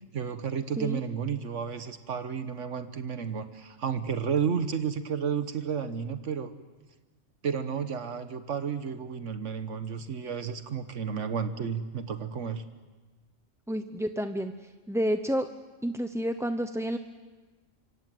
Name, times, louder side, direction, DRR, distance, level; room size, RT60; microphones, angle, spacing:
voice 1, 0.1-6.5 7.4-12.6, right 7 dB, 75° right, 10 dB, 1.4 m, -32 dB
voice 2, 13.7-14.5 14.9-15.5 15.8-17.0, equal, 5° right, 7 dB, 0.5 m, -29 dB
26.0 x 24.5 x 7.7 m, 1.2 s
omnidirectional pair, 1.3 m